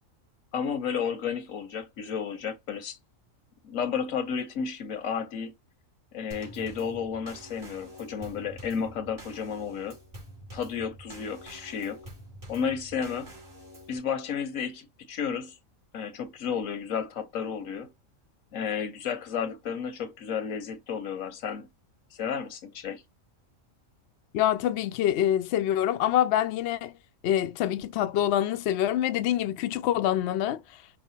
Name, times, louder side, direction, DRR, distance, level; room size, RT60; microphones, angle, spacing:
voice 1, 0.5-3.0 3.6-5.5 6.1-10.0 10.5-12.0 12.5-13.3 13.9-15.6 15.9-17.9 18.5-21.7 22.1-23.0, left 7 dB, 85° left, 1.3 m, -32 dB
Drum kit / Snare drum / Bass drum, 6.3-14.0, equal, 40° right, 2.3 m, -47 dB
voice 2, 24.3-26.9 27.2-30.6, left 11 dB, 65° left, 0.7 m, -25 dB
5.5 x 2.1 x 4.2 m
omnidirectional pair, 1.4 m